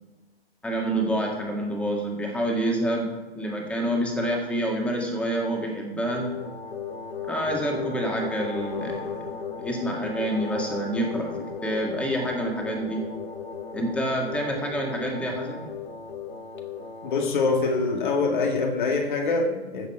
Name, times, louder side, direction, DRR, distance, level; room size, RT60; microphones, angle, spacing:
voice 1, 0.6-6.3 7.2-9.2 9.6-11.3 11.6-13.0 13.7-15.6, right 1 dB, 5° left, 1.9 m, -27 dB
sound 1, 6.1-18.3, left 6 dB, 75° left, 1.8 m, -36 dB
voice 2, 17.0-19.9, left 3 dB, 50° left, 1.8 m, -24 dB
15.0 x 7.1 x 4.7 m
figure-of-eight pair, 125°, 31 cm